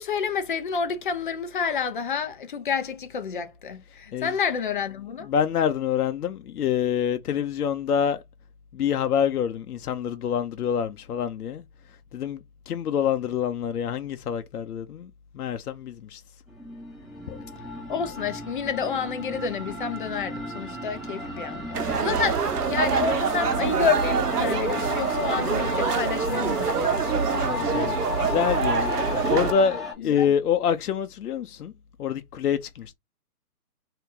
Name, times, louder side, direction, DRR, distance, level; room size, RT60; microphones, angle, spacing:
voice 1, 0.0-5.3 17.9-27.9 29.0-29.3 30.0-30.3, left 6 dB, 35° left, 0.6 m, -29 dB
voice 2, 5.3-8.2 8.7-11.6 12.1-12.4 12.7-15.1 15.3-16.2 17.3-17.4 27.4-28.0 28.2-28.9 29.3-31.7 32.0-32.9, left 8 dB, 75° left, 0.7 m, -26 dB
sound 1, 16.5-29.9, left 2 dB, ahead, 0.9 m, -34 dB
sound 2, 21.7-29.5, right 6 dB, 85° right, 1.0 m, -25 dB
2.9 x 2.8 x 3.5 m
hypercardioid pair, 155°, 46 cm